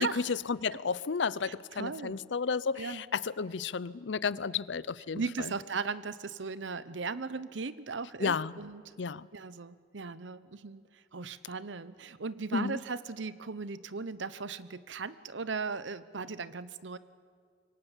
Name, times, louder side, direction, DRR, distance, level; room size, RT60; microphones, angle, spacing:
voice 1, 0.0-5.5 8.2-8.6 9.0-9.3 12.5-12.8, left 5 dB, 65° left, 0.6 m, -32 dB
voice 2, 1.4-2.2 2.8-3.0 5.1-8.8 9.3-17.0, right 4 dB, 70° right, 0.8 m, -37 dB
26.0 x 23.5 x 7.3 m
head